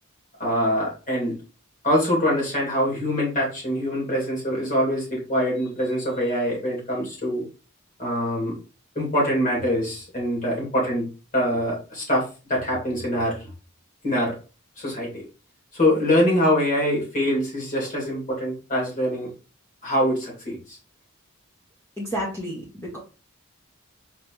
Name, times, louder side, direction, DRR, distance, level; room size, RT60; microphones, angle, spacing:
voice 1, 0.4-1.4 1.8-7.4 8.0-8.5 8.9-11.1 11.3-13.5 14.0-14.4 14.8-15.2 15.7-19.3 19.8-20.8, equal, 35° left, -3 dB, 2.3 m, -24 dB
voice 2, 22.0-23.0, equal, 10° left, -4 dB, 0.9 m, -31 dB
4.8 x 3.0 x 3.0 m, 0.33 s
head